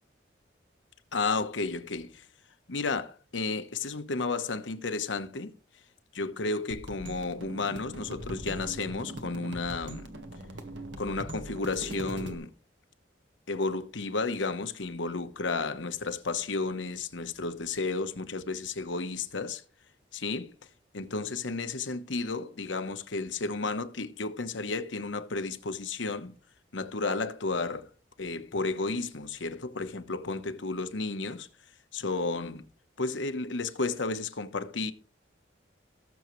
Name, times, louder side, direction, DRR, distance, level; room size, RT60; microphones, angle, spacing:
voice 1, 1.1-2.3 2.7-5.5 6.1-10.1 11.0-12.5 13.5-19.6 20.1-20.5 20.9-26.3 26.7-27.9 28.2-31.5 31.9-32.7 33.0-34.9, left 3 dB, 90° left, 1.1 m, -32 dB
sound 1, 6.7-12.3, right 1 dB, 80° right, 1.7 m, -41 dB
19.0 x 7.1 x 3.2 m
head